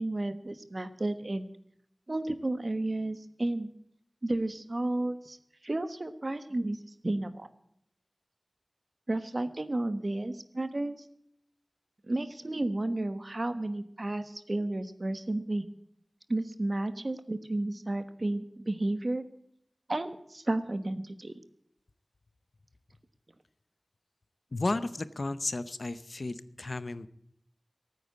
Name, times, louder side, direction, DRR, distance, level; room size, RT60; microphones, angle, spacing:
voice 1, 0.0-1.5 2.1-3.7 4.2-5.4 5.6-7.5 9.1-11.0 12.1-15.7 16.3-19.2 19.9-21.3, right 2 dB, 60° right, 11 dB, 1.1 m, -32 dB
voice 2, 24.5-27.1, left 2 dB, 80° left, 14 dB, 0.7 m, -33 dB
14.0 x 9.3 x 8.3 m, 0.73 s
wide cardioid pair, 45°, 0 cm